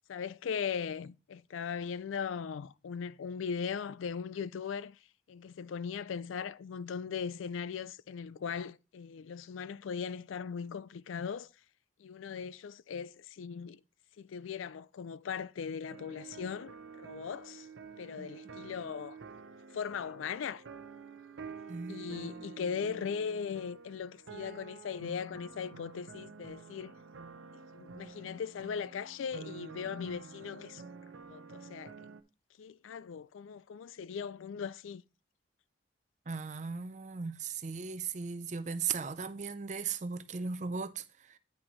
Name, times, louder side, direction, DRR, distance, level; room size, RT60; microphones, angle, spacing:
voice 1, 0.1-5.0 5.3-11.5 12.0-13.8 14.2-17.7 18.0-19.2 19.7-20.6 21.9-26.9 27.5-30.8 31.3-31.9 32.6-35.0, left 6 dB, 90° left, 0.4 m, -39 dB
sound 1, 15.9-32.2, right 5 dB, 85° right, 0.7 m, -49 dB
voice 2, 21.7-22.4 36.3-41.4, right 5 dB, 40° right, 0.5 m, -37 dB
9.7 x 6.1 x 3.1 m
head